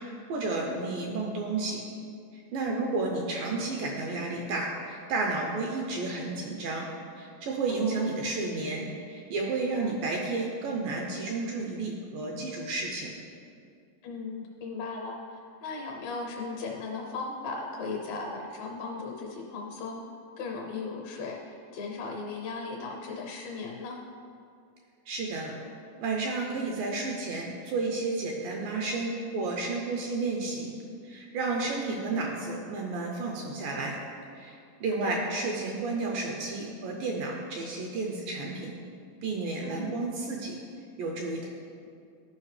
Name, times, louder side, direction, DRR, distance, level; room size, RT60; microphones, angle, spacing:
voice 1, 0.0-1.8 2.3-6.9 7.2-13.1 25.1-25.6 26.0-30.8 31.0-34.0 34.3-38.7 39.2-40.6 41.0-41.5, right 3 dB, 80° right, 0 dB, 2.1 m, -32 dB
voice 2, 2.6-3.0 7.7-8.1 9.7-10.0 14.0-20.0 20.4-24.0 31.8-32.0 35.0-35.2 39.6-39.9, left 4 dB, 75° left, 0 dB, 2.2 m, -37 dB
12.0 x 5.3 x 3.2 m, 2.3 s
omnidirectional pair, 4.4 m